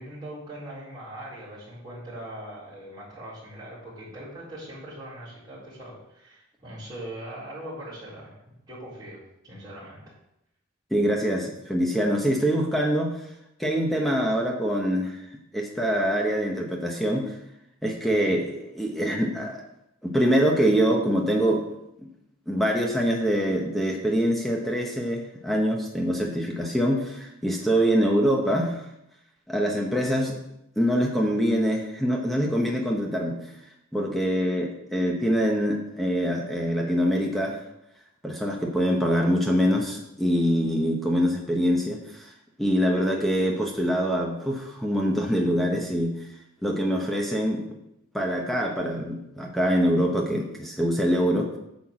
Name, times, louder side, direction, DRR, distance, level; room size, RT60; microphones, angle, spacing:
voice 1, 0.0-8.4 8.7-10.0 18.0-18.4, right 1 dB, 20° right, -10 dB, 4.1 m, -41 dB
voice 2, 10.9-13.2 13.6-15.2 15.5-17.4 17.8-19.6 20.0-21.6 22.0-22.1 22.5-28.8 29.5-30.4 30.8-33.4 33.9-37.6 38.2-42.3 42.6-46.1 46.6-47.6 48.1-51.6, equal, ahead, 0 dB, 1.0 m, -24 dB
9.2 x 4.6 x 7.4 m, 0.82 s
head